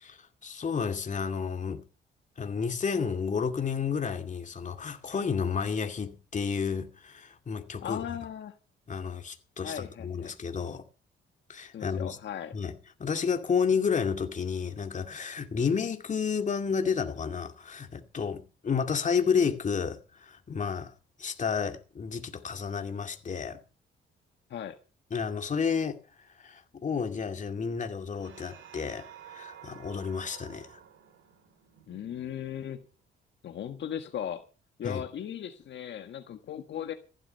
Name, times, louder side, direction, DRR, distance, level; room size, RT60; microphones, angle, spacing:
voice 1, 0.4-1.8 2.4-8.0 8.9-10.9 11.5-12.2 12.5-12.7 13.0-20.9 21.2-23.6 25.1-26.0 26.4-30.7 34.8-35.0, left 6 dB, 40° left, 2.3 m, -31 dB
voice 2, 7.8-8.5 9.6-10.3 11.7-12.5 24.5-24.8 31.9-32.8 33.4-34.4 34.8-36.9, left 9 dB, 65° left, 1.5 m, -37 dB
sound 1, 28.2-33.0, right 10 dB, 80° right, 2.9 m, -51 dB
15.0 x 11.5 x 5.6 m
cardioid pair, 90°, 20 cm